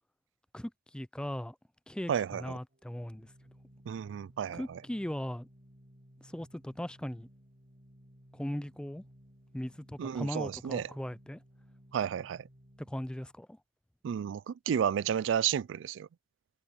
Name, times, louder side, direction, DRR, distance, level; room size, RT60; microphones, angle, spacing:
voice 1, 0.5-1.6 1.9-3.3 4.5-5.5 6.2-7.3 8.3-9.0 9.5-11.4 12.9-13.6, left 1 dB, 5° left, 0.4 m, -38 dB
voice 2, 2.1-2.4 3.9-4.8 10.0-10.9 11.9-12.5 14.0-16.1, right 8 dB, 85° right, 0.3 m, -32 dB
Organ, 2.7-13.4, equal, 50° right, 4.9 m, -59 dB
head